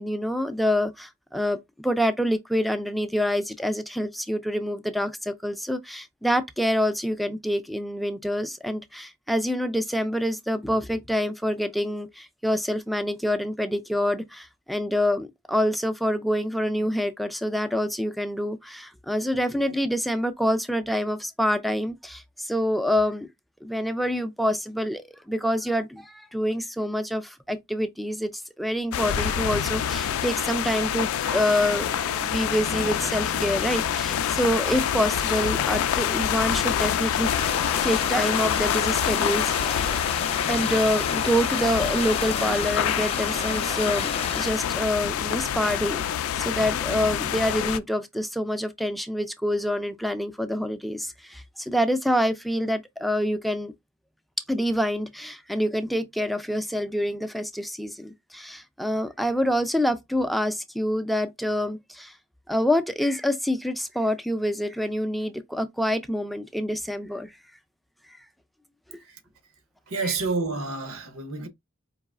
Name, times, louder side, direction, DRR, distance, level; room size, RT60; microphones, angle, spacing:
voice 1, 0.0-23.3 23.6-25.0 25.3-28.3 28.6-31.9 32.2-37.3 37.8-39.9 40.5-46.0 46.4-53.7 54.5-62.1 62.5-67.3, equal, ahead, 0.4 m, -26 dB
sound 1, 28.9-47.8, left 9 dB, 90° left, 0.3 m, -26 dB
sound 2, 29.1-43.7, right 4 dB, 60° right, 0.7 m, -42 dB
sound 3, 37.2-44.5, left 5 dB, 30° left, 0.7 m, -32 dB
voice 2, 69.9-71.5, right 3 dB, 85° right, 0.9 m, -29 dB
4.8 x 2.9 x 2.4 m
head